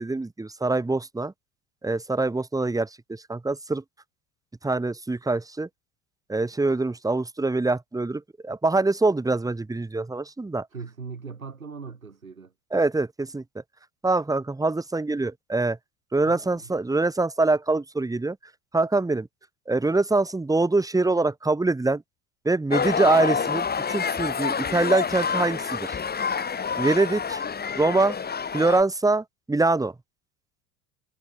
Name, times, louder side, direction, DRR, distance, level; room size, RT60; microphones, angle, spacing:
voice 1, 0.0-1.3 1.8-3.8 4.6-5.7 6.3-10.7 12.7-13.4 14.0-15.8 16.1-18.4 18.7-19.3 19.7-22.0 22.4-26.0 26.8-27.4 27.8-28.2 28.5-29.9, right 3 dB, 10° right, 2.0 m, -24 dB
voice 2, 10.7-12.5 16.2-16.7, right 5 dB, 85° right, 5.0 m, -40 dB
sound 1, 22.7-28.8, left 6 dB, 25° left, 2.9 m, -27 dB
figure-of-eight pair, 70°, 40 cm